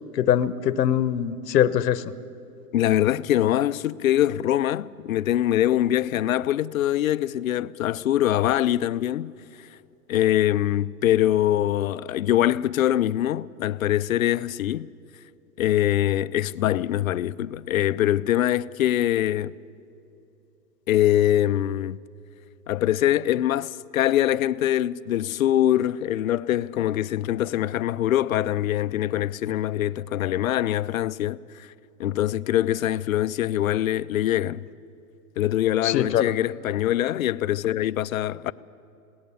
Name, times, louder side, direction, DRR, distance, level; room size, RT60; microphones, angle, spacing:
voice 1, 0.2-2.0 35.8-36.3, left 10 dB, 80° left, 1.0 m, -22 dB
voice 2, 2.7-9.3 10.1-14.9 15.6-19.5 20.9-22.0 22.7-31.7 32.0-34.6 35.4-38.5, left 12 dB, 60° left, 0.5 m, -23 dB
21.5 x 17.5 x 7.0 m
hypercardioid pair, 170°, 49 cm